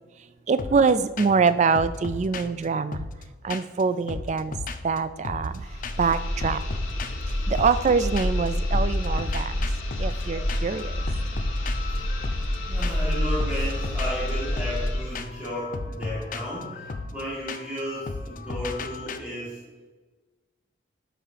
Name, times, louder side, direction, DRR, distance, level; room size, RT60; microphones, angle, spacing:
voice 1, 0.5-3.1 3.4-4.6 4.8-5.7 6.0-6.6 7.5-9.6 10.0-11.0, right 5 dB, 35° right, 13 dB, 0.3 m, -24 dB
sound 1, 0.6-0.9 1.2-1.5 1.7-3.8 4.1-5.6 5.8-6.1 6.4-8.5 8.7-19.2, left 4 dB, 40° left, 0.4 m, -36 dB
sound 2, 5.5-15.2, left 1 dB, 75° left, 1.3 m, -28 dB
voice 2, 10.2-11.2 11.9-12.3 12.6-19.6, equal, 5° right, -10 dB, 2.2 m, -34 dB
12.0 x 5.0 x 2.9 m, 1.3 s
head